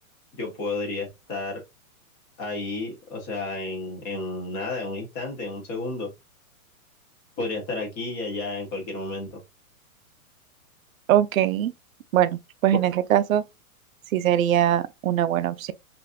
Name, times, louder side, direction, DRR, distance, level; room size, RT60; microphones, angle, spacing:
voice 1, 0.3-1.6 2.4-6.1 7.4-9.3, left 2 dB, 15° left, 0.6 m, -31 dB
voice 2, 11.1-11.7 12.1-13.4 14.1-15.7, right 11 dB, 65° right, 0.5 m, -22 dB
4.0 x 2.5 x 2.3 m
hypercardioid pair, 160°, 43 cm